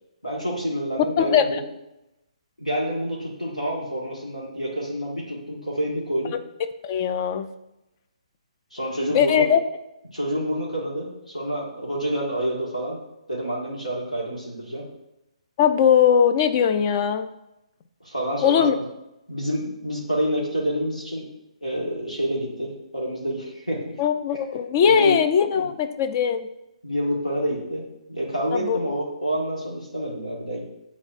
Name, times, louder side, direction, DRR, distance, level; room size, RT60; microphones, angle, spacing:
voice 1, 0.2-1.6 2.6-6.4 8.7-9.5 10.1-13.0 13.3-14.8 18.0-18.7 19.3-21.2 21.6-24.0 24.8-25.2 25.5-25.7 26.8-27.8 28.1-30.7, equal, 90° left, -4 dB, 1.7 m, -28 dB
voice 2, 1.2-1.5 6.8-7.5 9.1-9.6 15.6-17.3 18.4-18.7 24.0-26.5 28.5-28.8, left 8 dB, 30° left, 8 dB, 0.4 m, -20 dB
8.8 x 4.1 x 2.6 m, 0.91 s
figure-of-eight pair, 135°, 4 cm